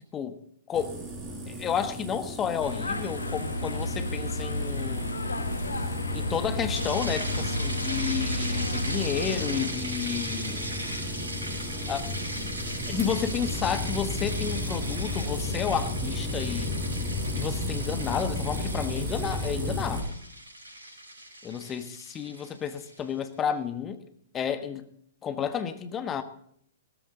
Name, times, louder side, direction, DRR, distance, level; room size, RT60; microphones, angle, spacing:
voice 1, 0.7-1.0 1.5-5.1 6.1-10.7 11.9-12.1 12.9-16.7 17.4-20.1 21.4-24.0 24.3-24.9 25.2-26.2, left 8 dB, 20° left, 1.3 m, -31 dB
sound 1, 0.7-20.0, left 1 dB, 15° right, 5.3 m, -34 dB
sound 2, 2.6-9.7, left 2 dB, 80° left, 1.3 m, -32 dB
sound 3, 6.8-23.0, right 1 dB, 75° right, 5.2 m, -38 dB
17.0 x 13.5 x 3.9 m
figure-of-eight pair, 115°, 0 cm